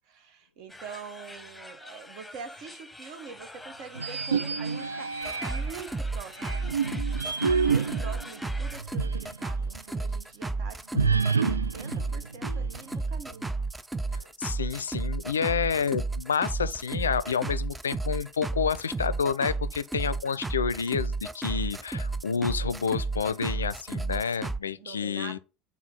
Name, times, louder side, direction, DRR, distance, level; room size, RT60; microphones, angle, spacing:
voice 1, 0.1-6.8 7.4-13.5 24.7-25.4, right 6 dB, 55° right, 1.2 m, -45 dB
sound 1, 0.7-8.8, left 2 dB, 5° left, 1.2 m, -46 dB
sound 2, 3.9-5.8 6.4-9.4 9.7-9.8 10.9-13.0, right 5 dB, 85° right, 0.3 m, -28 dB
sound 3, 5.2-24.6, right 3 dB, 10° right, 0.5 m, -32 dB
voice 2, 14.1-25.4, left 6 dB, 80° left, 0.4 m, -29 dB
4.5 x 4.0 x 5.5 m
figure-of-eight pair, 70°, 0 cm